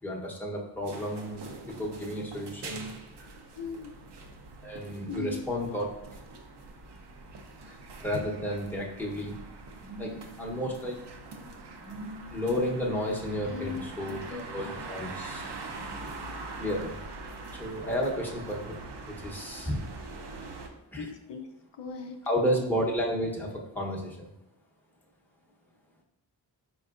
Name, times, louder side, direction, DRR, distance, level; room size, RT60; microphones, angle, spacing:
voice 1, 0.0-2.9 4.6-5.9 7.7-9.4 9.8-11.0 11.8-15.6 16.6-17.0 17.5-18.8 19.1-20.0 20.9-21.1 22.3-24.3, equal, 5° left, -2 dB, 0.8 m, -32 dB
sound 1, 0.8-20.7, right 3 dB, 65° right, 0.7 m, -43 dB
voice 2, 3.5-3.9 5.1-5.4 13.5-14.7 21.0-21.5 21.7-22.2, left 5 dB, 70° left, 3 dB, 0.5 m, -39 dB
4.1 x 3.8 x 2.4 m, 0.88 s
cardioid pair, 45°, 44 cm